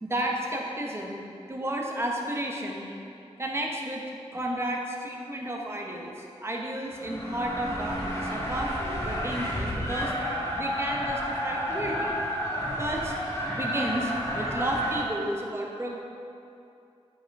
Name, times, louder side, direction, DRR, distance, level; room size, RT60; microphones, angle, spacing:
voice 1, 0.0-1.2 1.5-3.0 3.4-4.0 4.3-10.1 10.6-12.2 12.8-13.2 13.5-16.0, right 1 dB, 25° right, -1 dB, 1.1 m, -32 dB
sound 1, 6.9-15.0, equal, 25° left, 1.5 m, -31 dB
7.4 x 5.7 x 4.7 m, 2.6 s
wide cardioid pair, 90°, 11 cm